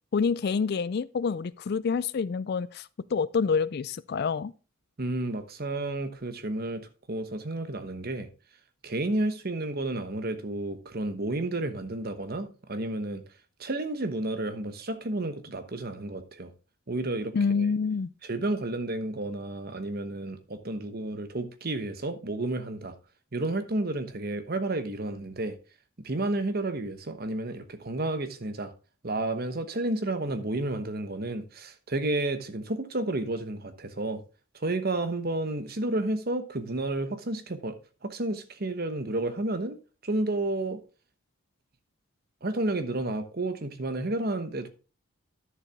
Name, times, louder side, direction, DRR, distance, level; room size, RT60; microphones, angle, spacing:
voice 1, 0.1-4.5 17.3-18.1, left 5 dB, 50° left, 0.3 m, -27 dB
voice 2, 5.0-8.3 8.8-13.2 13.6-16.5 16.9-17.7 18.2-22.9 23.3-25.6 26.0-28.7 29.0-34.2 34.5-39.8 40.0-40.8 42.4-44.7, right 2 dB, 45° right, 1.0 m, -31 dB
11.0 x 6.8 x 3.5 m
head